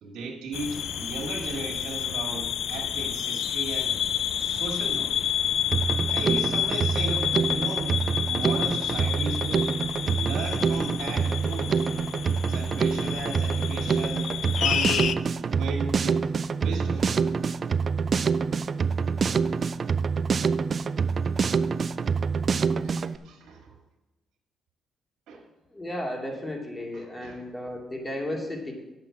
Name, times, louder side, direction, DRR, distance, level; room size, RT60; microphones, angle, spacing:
voice 1, 0.0-4.0 4.4-5.3 6.1-8.0 8.2-9.7 10.1-11.8 12.5-15.1 15.4-16.3 16.6-17.3 22.8-23.8 25.3-25.4 26.9-27.4, right 3 dB, 80° right, -1 dB, 1.9 m, -36 dB
sound 1, 0.5-15.2, left 9 dB, 65° left, 0.5 m, -29 dB
Drum kit, 5.7-23.2, right 5 dB, 45° right, 0.4 m, -26 dB
voice 2, 25.7-28.7, left 1 dB, 20° left, 1 dB, 2.3 m, -34 dB
9.0 x 7.6 x 5.9 m, 1.1 s
cardioid pair, 90°, 0 cm